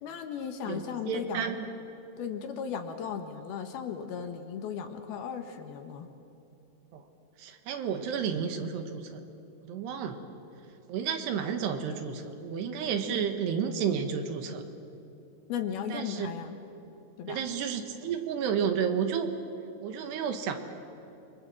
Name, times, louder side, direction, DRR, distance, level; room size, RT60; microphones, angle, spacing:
voice 1, 0.0-1.5 2.2-6.1 15.5-16.6 17.2-17.4, left 7 dB, 70° left, 6 dB, 2.9 m, -36 dB
voice 2, 0.7-1.7 6.9-7.0 7.4-9.2 9.6-10.2 10.9-14.6 15.9-16.3 17.3-19.3 19.8-20.6, right 7 dB, 75° right, 7 dB, 3.4 m, -31 dB
29.5 x 24.0 x 7.7 m, 2.8 s
omnidirectional pair, 5.1 m